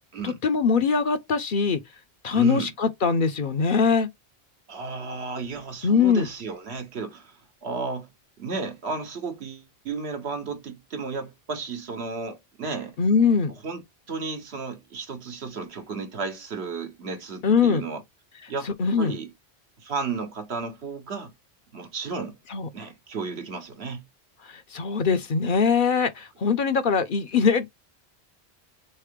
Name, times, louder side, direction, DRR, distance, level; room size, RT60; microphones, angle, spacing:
voice 1, 0.2-1.8 2.2-4.1 5.8-6.3 13.0-13.5 17.4-17.8 18.7-19.1 22.5-22.7 24.4-27.7, left 5 dB, 55° left, 0.8 m, -22 dB
voice 2, 2.3-2.7 4.7-8.1 8.4-13.0 13.6-13.8 14.1-18.0 18.5-18.7 19.0-19.3 19.8-21.3 21.7-22.4 22.7-24.1, right 4 dB, 75° right, 1.4 m, -33 dB
3.7 x 3.2 x 3.6 m
omnidirectional pair, 1.1 m